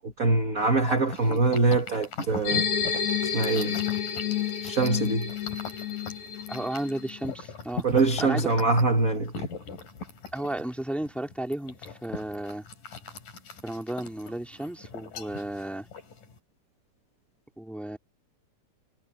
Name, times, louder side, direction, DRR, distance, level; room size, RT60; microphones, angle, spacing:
voice 1, 0.0-2.7 3.3-3.8 4.6-5.3 7.8-9.3, right 3 dB, 35° right, 1.4 m, -24 dB
sound 1, 0.6-16.4, left 4 dB, 90° left, 5.8 m, -40 dB
sound 2, 2.4-7.2, left 8 dB, 70° left, 3.6 m, -30 dB
voice 2, 6.5-7.9 8.2-8.5 10.3-12.7 13.6-15.9 17.6-18.0, right 1 dB, ahead, 1.9 m, -33 dB
omnidirectional pair, 3.6 m